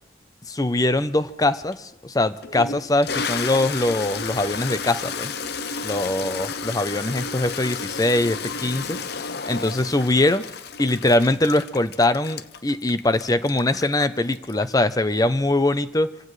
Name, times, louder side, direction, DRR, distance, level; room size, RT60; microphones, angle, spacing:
voice 1, 0.5-5.3 5.8-9.2 9.4-10.4 10.8-16.1, left 2 dB, 20° left, 13 dB, 0.6 m, -22 dB
Toilet flush, 1.7-1.8 2.4-14.9, left 5 dB, 60° left, 0.7 m, -32 dB
26.0 x 16.5 x 3.3 m, 0.90 s
head